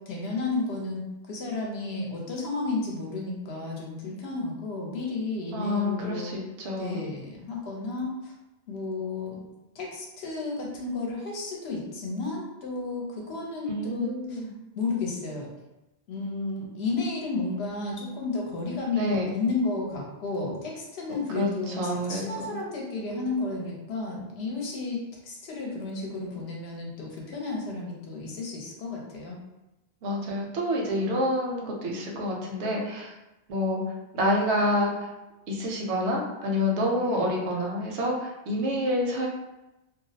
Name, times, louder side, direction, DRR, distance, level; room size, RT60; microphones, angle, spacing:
voice 1, 0.1-6.3 6.8-8.3 8.7-9.4 9.7-14.4 14.7-15.5 16.1-29.4 37.0-37.4, left 3 dB, 70° left, -2 dB, 0.8 m, -32 dB
voice 2, 5.5-7.0 13.7-14.5 18.9-19.3 21.3-22.6 30.0-33.1 33.5-33.8 34.1-35.1 35.5-39.3, left 1 dB, 80° right, -1 dB, 0.9 m, -28 dB
2.4 x 2.0 x 2.7 m, 0.97 s
omnidirectional pair, 1.2 m